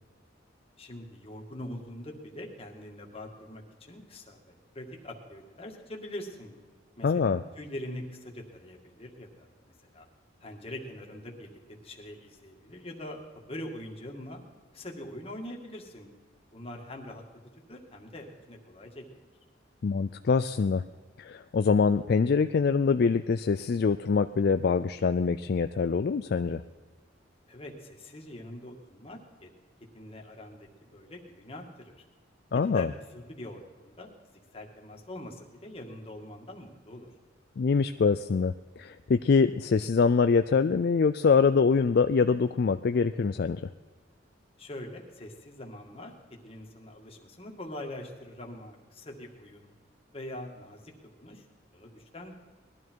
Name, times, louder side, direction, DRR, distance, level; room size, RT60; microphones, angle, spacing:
voice 1, 0.8-6.5 7.0-10.1 10.4-14.4 14.7-16.1 16.5-17.2 17.7-19.3 27.5-29.5 29.9-30.6 30.9-32.0 32.5-34.1 34.5-37.1 44.6-46.1 46.4-49.7 50.1-50.9 51.2-51.5 51.7-52.3, left 1 dB, 30° left, 1 dB, 2.0 m, -43 dB
voice 2, 7.0-7.4 19.8-20.8 21.2-26.6 32.5-32.9 37.6-43.6, left 5 dB, 55° left, 10 dB, 0.4 m, -24 dB
20.0 x 13.0 x 4.6 m, 1.4 s
head